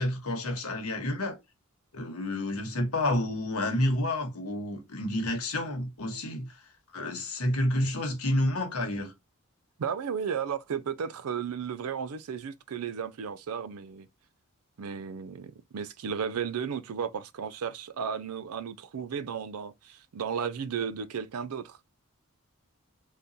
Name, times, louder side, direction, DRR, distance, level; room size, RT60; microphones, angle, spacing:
voice 1, 0.0-1.4 1.9-6.6 6.9-9.1, left 1 dB, 85° left, 1.1 m, -29 dB
voice 2, 9.8-14.1 14.8-21.8, right 7 dB, 90° right, 0.4 m, -34 dB
3.7 x 2.3 x 2.7 m
head